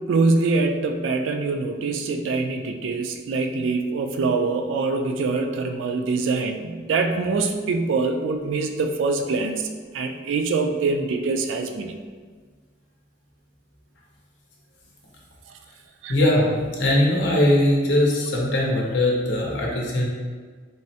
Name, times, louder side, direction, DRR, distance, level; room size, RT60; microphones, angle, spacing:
voice 1, 0.1-9.7 9.9-12.0 16.0-16.2, right 3 dB, 85° right, 5 dB, 0.3 m, -24 dB
voice 2, 16.1-20.1, left 1 dB, 70° left, -3 dB, 0.6 m, -20 dB
3.5 x 2.1 x 2.7 m, 1.5 s
head